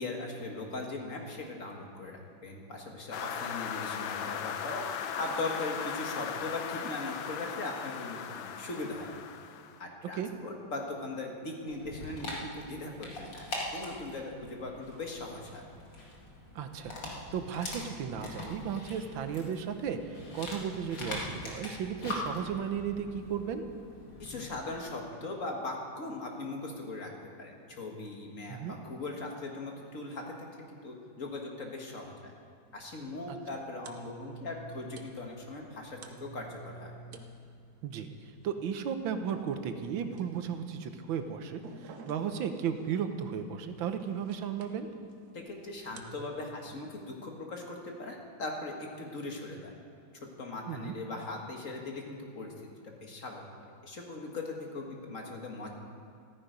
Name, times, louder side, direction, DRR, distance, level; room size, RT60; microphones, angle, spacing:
voice 1, 0.0-9.1 9.8-13.4 13.7-15.6 24.2-27.1 27.4-30.3 30.7-32.3 32.7-36.9 45.3-49.7 50.4-52.5 52.8-53.4 53.8-55.7, left 2 dB, 40° left, 1 dB, 2.0 m, -39 dB
sound 1, 3.1-9.8, left 8 dB, 85° left, 1.5 m, -38 dB
Dog, 11.7-24.5, left 2 dB, 70° left, 2.8 m, -42 dB
voice 2, 16.5-16.9 17.3-23.6 28.5-28.8 33.3-33.4 37.8-38.1 38.4-44.9 50.7-50.9, right 7 dB, 85° right, 8 dB, 1.7 m, -35 dB
sound 2, 32.7-46.3, right 4 dB, 60° right, 1.3 m, -52 dB
14.0 x 14.0 x 5.2 m, 2.4 s
omnidirectional pair, 2.1 m